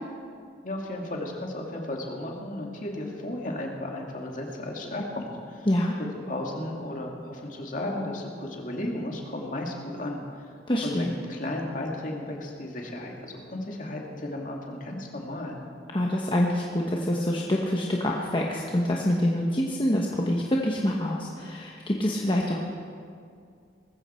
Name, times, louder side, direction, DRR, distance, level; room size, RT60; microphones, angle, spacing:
voice 1, 0.6-5.7 6.0-10.5 10.8-15.6, left 1 dB, 45° left, 0 dB, 2.2 m, -34 dB
voice 2, 5.7-6.0 10.7-11.1 15.9-22.7, left 1 dB, 30° left, -1 dB, 1.1 m, -26 dB
19.5 x 15.0 x 4.4 m, 2.3 s
head